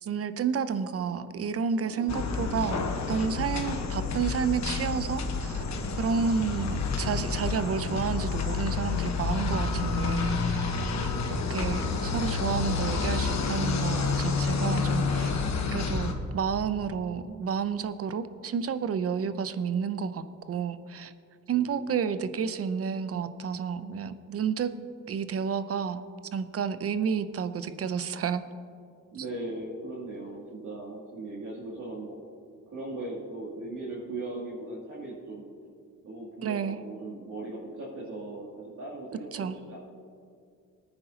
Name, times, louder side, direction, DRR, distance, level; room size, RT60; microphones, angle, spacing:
voice 1, 0.0-2.8 3.1-5.6 6.0-15.4 15.7-21.1 21.5-24.7 25.1-26.0 26.3-28.4 36.4-36.8 39.3-39.6, right 6 dB, 45° right, 12 dB, 0.6 m, -30 dB
voice 2, 1.8-2.2 11.0-11.5 21.5-21.8 29.1-32.2 32.7-35.7 36.0-39.8, right 2 dB, 70° right, -9 dB, 2.9 m, -39 dB
sound 1, 2.1-16.1, left 4 dB, 55° left, 1.3 m, -29 dB
19.0 x 9.7 x 2.9 m, 2.3 s
cardioid pair, 105°, 32 cm